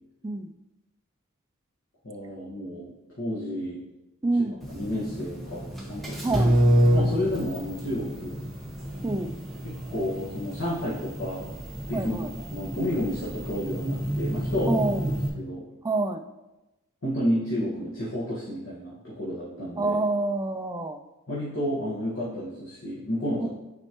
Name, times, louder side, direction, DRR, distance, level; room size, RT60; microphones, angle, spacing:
voice 1, 2.0-3.8 4.7-6.3 6.9-8.4 9.6-11.5 11.9-12.1 12.5-14.9 15.4-15.7 17.0-20.0 21.3-23.5, left 1 dB, 60° left, -8 dB, 1.5 m, -31 dB
voice 2, 4.2-4.6 6.2-6.6 9.0-9.3 11.9-12.3 14.7-15.1 15.8-16.2 19.8-21.0 23.4-23.5, right 2 dB, 15° right, 6 dB, 0.3 m, -27 dB
sound 1, 4.6-15.3, equal, ahead, 1.2 m, -28 dB
9.7 x 4.2 x 3.0 m, 1.0 s
head